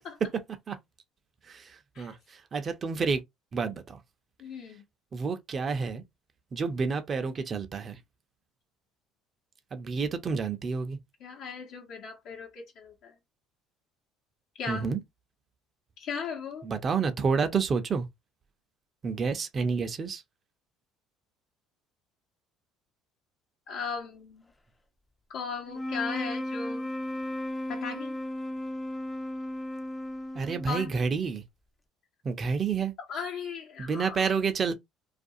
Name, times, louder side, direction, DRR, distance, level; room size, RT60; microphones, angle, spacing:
voice 1, 1.5-3.2 3.5-4.0 5.1-6.0 6.5-8.0 9.7-11.0 14.7-15.0 16.6-18.1 19.0-20.2 30.3-31.4 32.2-32.9 33.8-34.7, right 5 dB, 40° right, 0.6 m, -29 dB
voice 2, 4.4-4.8 11.2-13.1 14.6-14.8 16.0-16.7 23.7-24.4 25.3-26.8 27.7-28.2 30.7-30.9 33.1-34.3, left 5 dB, 65° left, 0.9 m, -37 dB
sound 1, 25.6-31.1, left 1 dB, 25° left, 0.5 m, -35 dB
2.4 x 2.3 x 2.6 m
hypercardioid pair, 70°, 0 cm